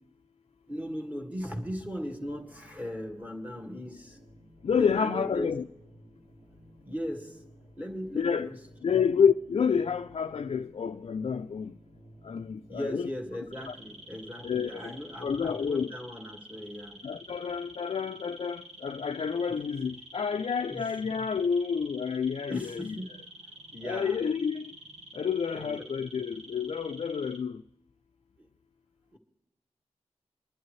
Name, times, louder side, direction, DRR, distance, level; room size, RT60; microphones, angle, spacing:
voice 1, 0.7-4.2 4.7-5.5 6.8-7.5 7.8-9.0 12.7-17.0 20.4-20.9 22.5-23.1 23.7-24.2 25.5-25.8 28.4-28.5 29.1-29.2, equal, 15° right, 1.8 m, -38 dB
sound 1, 2.3-15.8, right 1 dB, 60° right, 2.1 m, -56 dB
voice 2, 4.6-5.6 8.2-8.5 8.8-11.7 12.3-13.0 14.4-14.9 15.2-15.9 17.0-22.9 23.8-24.6 25.2-27.5, left 6 dB, 55° left, 0.3 m, -29 dB
sound 2, 13.5-27.4, right 1 dB, 80° right, 2.0 m, -49 dB
24.5 x 11.0 x 3.1 m
wide cardioid pair, 75°, 12 cm